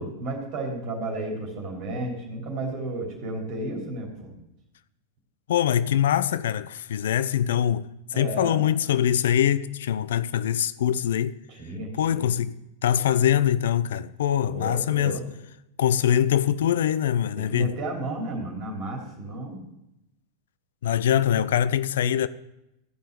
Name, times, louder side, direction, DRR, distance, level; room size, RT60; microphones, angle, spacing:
voice 1, 0.0-4.3 8.1-8.6 11.5-12.3 14.4-15.2 17.3-19.6, right 2 dB, 40° right, 3.0 m, -33 dB
voice 2, 5.5-11.4 12.0-15.2 15.8-17.8 20.8-22.3, left 10 dB, 60° left, 0.3 m, -23 dB
14.0 x 5.5 x 6.7 m
figure-of-eight pair, 90°, 0 cm